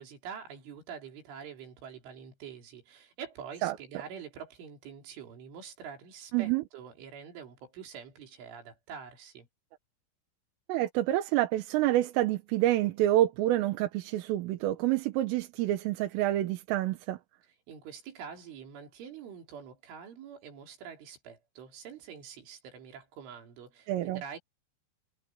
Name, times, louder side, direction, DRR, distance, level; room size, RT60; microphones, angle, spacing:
voice 1, 0.0-9.5 17.7-24.4, right 7 dB, 70° right, 6.2 m, -46 dB
voice 2, 10.7-17.2 23.9-24.2, right 14 dB, 90° right, 4.0 m, -27 dB
omnidirectional pair, 5.7 m